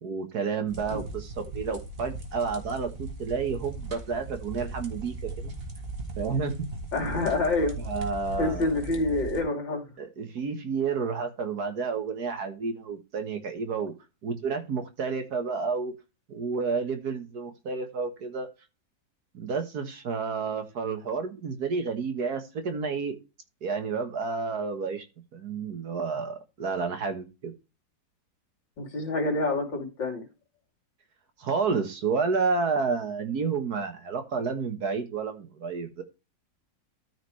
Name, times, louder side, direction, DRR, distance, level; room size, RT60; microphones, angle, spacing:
voice 1, 0.0-5.5 6.2-6.7 7.0-7.1 7.8-8.7 10.0-13.9 14.2-15.9 16.3-18.5 19.3-23.2 23.6-25.1 25.3-27.5 31.4-36.0, right 5 dB, 60° right, 7 dB, 1.8 m, -30 dB
sound 1, 0.7-9.4, right 2 dB, 30° right, 2.0 m, -38 dB
voice 2, 6.9-7.8 8.4-9.8 28.8-30.2, left 2 dB, 70° left, 1 dB, 3.5 m, -27 dB
13.5 x 5.1 x 3.2 m, 0.27 s
omnidirectional pair, 2.0 m